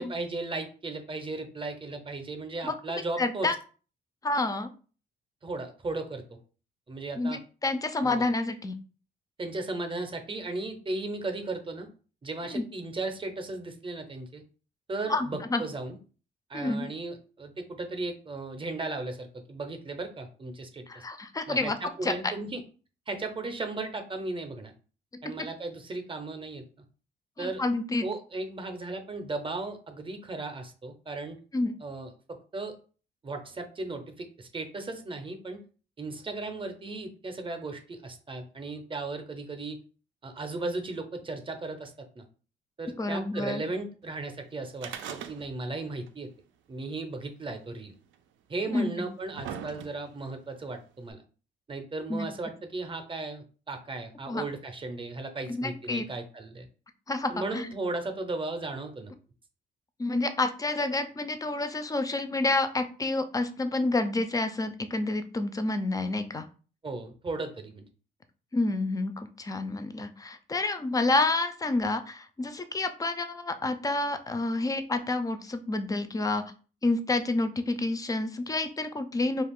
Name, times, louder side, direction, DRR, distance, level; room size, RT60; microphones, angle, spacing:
voice 1, 0.0-3.5 5.4-6.4 6.9-7.4 8.0-8.3 9.4-11.9 12.2-14.4 14.9-16.0 16.5-21.0 21.5-22.6 23.1-24.7 25.2-26.6 27.4-27.6 28.0-31.4 31.8-32.8 33.2-35.6 36.0-39.8 40.2-42.3 42.8-46.3 46.7-47.9 48.5-51.2 51.7-56.7 57.3-59.1 66.8-67.9, right 3 dB, 25° right, 6 dB, 0.6 m, -36 dB
voice 2, 3.2-3.6 4.2-4.7 7.2-8.8 12.5-12.7 15.1-15.6 16.5-16.9 20.9-21.8 22.0-22.1 25.1-25.2 27.4-28.1 31.5-31.7 43.0-43.6 48.7-48.9 52.1-52.3 54.3-54.4 55.5-56.0 57.1-57.7 60.0-66.5 68.5-76.4 76.8-79.4, left 2 dB, 20° left, 9 dB, 0.4 m, -29 dB
sound 1, 44.8-45.8 46.1-46.2 47.1-47.2 48.1-48.2 48.9-50.2 51.1-51.2, right 8 dB, 75° right, 0.4 m, -40 dB
2.4 x 2.4 x 3.5 m, 0.38 s
cardioid pair, 90°, 20 cm